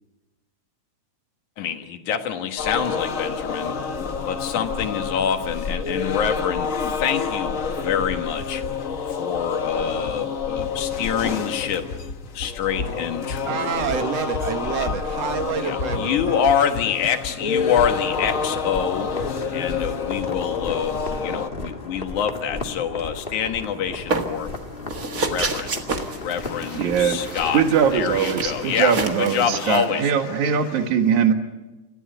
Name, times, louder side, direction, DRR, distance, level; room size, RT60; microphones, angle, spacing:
voice 1, 1.6-3.7 4.3-8.6 9.2-11.9 12.3-14.0 14.6-14.7 15.6-19.1 19.5-24.5 25.1-25.9 26.1-27.6 27.9-30.1, left 8 dB, 80° left, 7 dB, 2.9 m, -26 dB
sound 1, 2.6-21.5, left 5 dB, 60° left, 0.8 m, -28 dB
voice 2, 13.5-16.5, right 6 dB, 60° right, 7 dB, 2.5 m, -28 dB
sound 2, 17.8-29.2, left 3 dB, 25° left, 1.3 m, -35 dB
sound 3, 24.1-24.6 24.9-29.8, right 3 dB, 35° right, 1.7 m, -29 dB
voice 3, 26.7-27.2 27.5-31.3, right 7 dB, 75° right, 6 dB, 3.0 m, -21 dB
29.0 x 15.5 x 9.2 m, 1.1 s
omnidirectional pair, 3.4 m